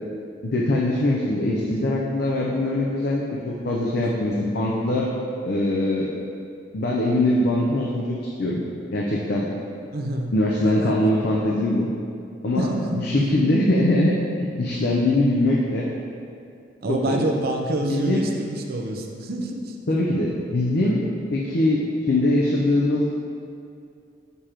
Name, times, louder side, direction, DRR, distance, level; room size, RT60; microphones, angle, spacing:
voice 1, 0.4-5.1 5.4-6.1 6.7-8.6 8.9-9.5 10.3-11.9 12.4-15.9 16.9-17.2 17.9-18.2 19.9-21.0 21.3-23.1, left 1 dB, 60° left, -3 dB, 0.5 m, -22 dB
voice 2, 9.9-10.3 10.7-10.8 12.5-13.4 16.8-19.8, right 1 dB, 55° right, 3 dB, 0.6 m, -27 dB
6.8 x 3.0 x 4.9 m, 2.5 s
head